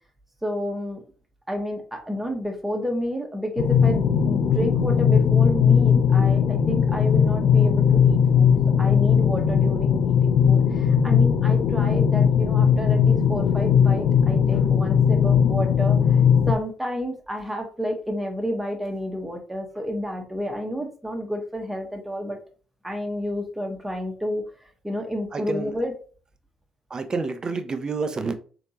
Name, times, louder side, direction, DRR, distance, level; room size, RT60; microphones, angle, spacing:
voice 1, 0.4-1.0 1.5-8.5 8.8-16.0 16.5-22.4 22.8-24.4 24.8-25.9, equal, 10° right, 1.4 m, -30 dB
sound 1, 3.6-16.5, left 7 dB, 60° left, 0.5 m, -19 dB
voice 2, 25.3-25.7 26.9-28.3, right 4 dB, 35° right, 0.7 m, -28 dB
3.9 x 3.4 x 2.9 m
hypercardioid pair, 45°, 2 cm